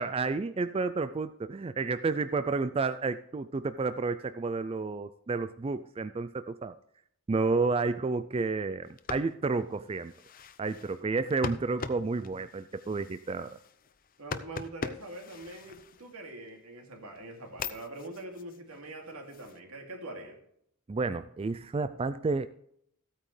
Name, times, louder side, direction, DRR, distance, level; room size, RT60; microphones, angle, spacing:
voice 1, 0.0-6.8 7.3-10.1 10.6-13.6 20.9-22.5, right 4 dB, 25° right, 12 dB, 0.3 m, -31 dB
sound 1, 8.8-16.5 17.0-19.6, left 4 dB, 40° left, 0.6 m, -43 dB
voice 2, 14.2-20.4, right 2 dB, 80° right, 2 dB, 2.5 m, -43 dB
15.0 x 9.0 x 3.3 m, 0.72 s
head